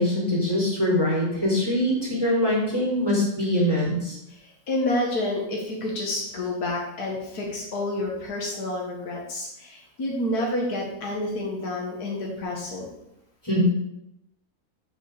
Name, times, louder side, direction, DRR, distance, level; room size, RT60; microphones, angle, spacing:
voice 1, 0.0-4.2 13.4-13.6, left 1 dB, 15° left, -5 dB, 3.8 m, -23 dB
voice 2, 4.3-12.9, left 1 dB, 85° left, -1 dB, 2.1 m, -29 dB
7.0 x 6.2 x 6.7 m, 0.82 s
omnidirectional pair, 1.6 m